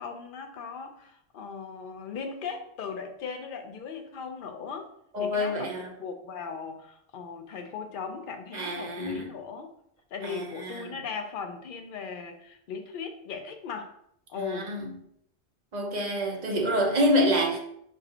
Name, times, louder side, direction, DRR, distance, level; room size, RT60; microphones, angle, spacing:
voice 1, 0.0-4.9 5.2-9.7 10.1-13.9 14.3-14.7, left 5 dB, 60° left, 5 dB, 0.7 m, -38 dB
voice 2, 5.1-5.9 8.5-9.3 10.2-11.0 14.5-14.9 15.7-17.6, equal, 50° right, 0 dB, 0.7 m, -27 dB
5.0 x 2.4 x 2.7 m, 0.72 s
omnidirectional pair, 1.1 m